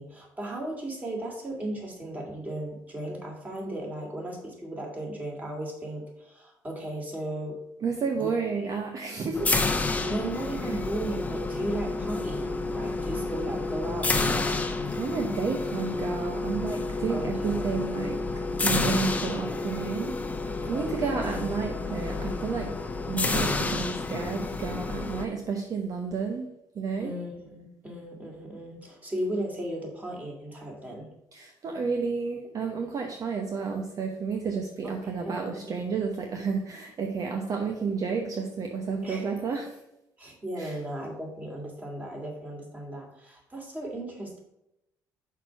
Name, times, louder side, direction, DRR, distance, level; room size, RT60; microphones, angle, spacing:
voice 1, 0.0-7.6 8.2-8.3 10.0-14.6 17.1-17.9 20.6-21.5 27.0-31.1 34.8-35.0 35.2-35.5 39.0-39.3 40.2-44.4, right 1 dB, 20° right, -1 dB, 2.7 m, -36 dB
voice 2, 7.8-9.5 10.6-10.8 14.9-18.2 18.6-20.2 20.5-22.8 23.1-26.5 26.7-27.2 31.3-39.8 40.5-40.8, right 5 dB, 50° right, 3 dB, 0.9 m, -31 dB
sound 1, 9.3-25.2, left 3 dB, 20° left, 0.9 m, -30 dB
5.9 x 4.6 x 6.0 m, 0.85 s
supercardioid pair, 80°, 8 cm